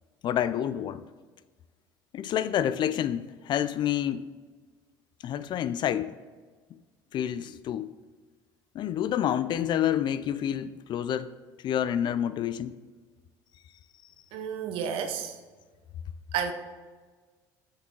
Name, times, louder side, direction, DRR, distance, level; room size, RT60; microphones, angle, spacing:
voice 1, 0.2-1.0 2.1-4.3 5.2-6.2 7.1-7.9 8.7-11.3 11.6-12.7, left 10 dB, 50° left, 0.4 m, -28 dB
voice 2, 14.3-15.4 16.3-16.5, right 7 dB, 70° right, 0.9 m, -31 dB
7.0 x 5.1 x 4.5 m
supercardioid pair, 80°, 10 cm